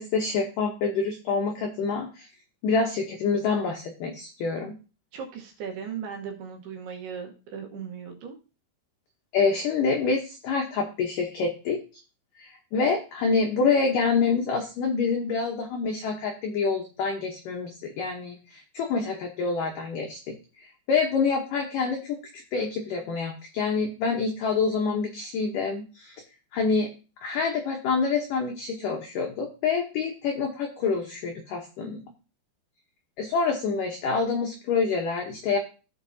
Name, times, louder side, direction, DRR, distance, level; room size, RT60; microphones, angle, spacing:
voice 1, 0.0-2.3 2.6-4.8 9.3-11.8 12.4-22.2 22.5-26.2 26.5-26.9 27.2-32.0 33.2-35.6, left 4 dB, 90° left, 2 dB, 1.8 m, -27 dB
voice 2, 5.1-8.4, right 7 dB, 70° right, 2 dB, 2.9 m, -37 dB
15.0 x 5.4 x 2.7 m, 0.33 s
omnidirectional pair, 5.3 m